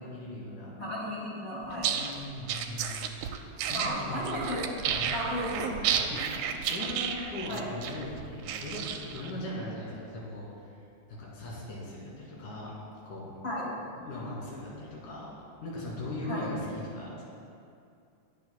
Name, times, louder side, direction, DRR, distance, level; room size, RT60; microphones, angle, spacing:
voice 1, 0.0-0.8 1.8-3.2 3.4-4.3 4.8-5.1 5.9-10.5 11.1-12.7 13.0-13.3 14.0-15.3 15.6-17.2, left 1 dB, 70° left, -6 dB, 3.9 m, -39 dB
voice 2, 0.8-1.9 3.7-4.7 5.1-5.8 7.5-7.7 13.4-13.7 16.3-16.5, left 1 dB, 35° left, -8 dB, 2.9 m, -34 dB
sound 1, 1.7-9.3, right 8 dB, 80° right, 1.9 m, -32 dB
20.0 x 7.3 x 2.2 m, 2.5 s
omnidirectional pair, 3.8 m